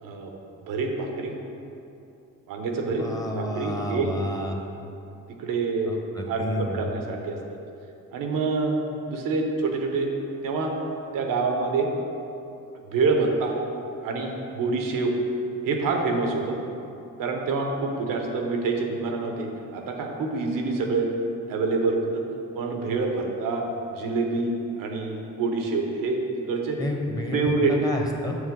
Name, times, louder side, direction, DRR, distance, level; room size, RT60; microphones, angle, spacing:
voice 1, 0.7-1.3 2.5-3.1 3.3-4.1 5.4-5.9 6.3-7.4 8.1-8.8 9.1-10.1 10.4-10.7 11.1-11.9 12.9-13.5 14.0-15.1 15.6-16.6 17.2-19.5 19.7-21.1 21.5-22.2 22.5-26.2 26.5-26.8 27.3-27.7, right 3 dB, 75° right, 2 dB, 1.0 m, -26 dB
voice 2, 2.9-4.6 5.9-6.9 26.8-28.4, left 1 dB, 10° left, 1 dB, 1.0 m, -30 dB
6.3 x 6.3 x 3.8 m, 2.8 s
supercardioid pair, 70°, 34 cm